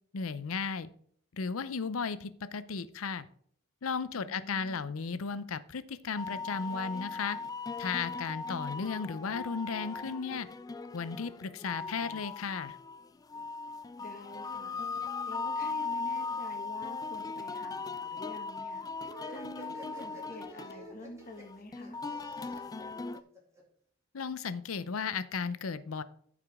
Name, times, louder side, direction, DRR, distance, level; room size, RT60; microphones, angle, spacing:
voice 1, 0.1-0.9 1.3-3.3 3.8-7.4 7.8-10.5 10.9-12.8 24.1-26.0, left 5 dB, 85° left, 15 dB, 0.6 m, -35 dB
voice 2, 4.1-4.9 14.0-14.8 15.3-18.9 19.3-22.0, left 1 dB, 45° left, 3 dB, 1.8 m, -47 dB
sound 1, 6.2-23.2, left 4 dB, 20° left, 0.3 m, -39 dB
sound 2, 19.0-23.6, right 1 dB, 15° right, 2.5 m, -50 dB
14.0 x 5.0 x 3.6 m, 0.62 s
head